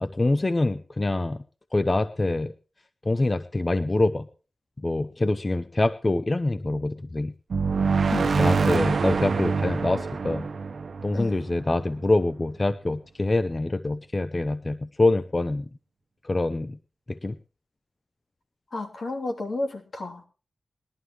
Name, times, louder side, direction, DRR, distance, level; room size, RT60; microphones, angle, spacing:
voice 1, 0.0-1.4 1.7-2.5 3.0-4.3 4.8-7.3 8.2-10.5 11.0-15.7 16.2-16.8 17.1-17.4, left 2 dB, 35° left, 12 dB, 0.7 m, -25 dB
sound 1, 7.5-12.1, right 5 dB, 80° right, 0.8 m, -25 dB
voice 2, 18.7-20.2, left 2 dB, 75° left, 3 dB, 3.0 m, -31 dB
20.5 x 11.5 x 3.1 m, 0.34 s
cardioid pair, 55°, 0 cm